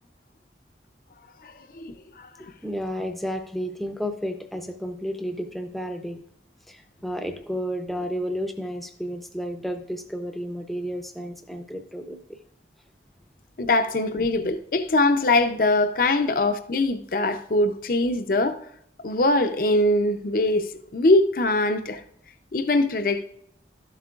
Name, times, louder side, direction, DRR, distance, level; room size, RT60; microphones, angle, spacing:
voice 1, 2.4-6.2 6.7-12.2, equal, ahead, 0.6 m, -32 dB
voice 2, 13.6-18.6 19.0-22.0 22.5-23.2, left 2 dB, 50° left, 0.5 m, -22 dB
12.5 x 7.5 x 2.4 m
head